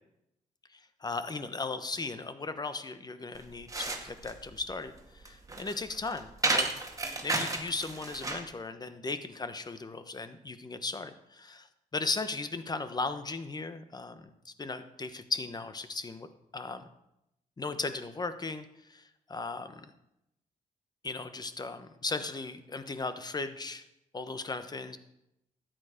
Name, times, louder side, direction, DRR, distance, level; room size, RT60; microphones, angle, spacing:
voice 1, 0.7-6.7 7.2-11.7 11.9-16.3 16.5-16.8 17.6-19.9 21.0-23.8 24.1-25.0, left 3 dB, 30° left, 10 dB, 1.1 m, -37 dB
sound 1, 3.3-8.5, right 3 dB, 25° right, 1.9 m, -33 dB
13.0 x 9.1 x 5.1 m, 0.86 s
cardioid pair, 90°, 14 cm